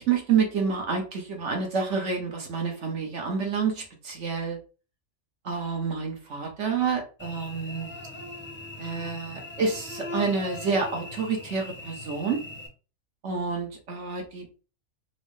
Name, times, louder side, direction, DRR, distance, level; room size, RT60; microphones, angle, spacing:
voice 1, 0.0-4.6 5.4-7.9 8.8-12.4 13.2-14.6, right 5 dB, 60° right, 2 dB, 1.2 m, -28 dB
Cricket / Buzz, 7.2-12.7, left 2 dB, 15° left, 0.4 m, -40 dB
4.5 x 2.1 x 3.1 m, 0.34 s
omnidirectional pair, 1.4 m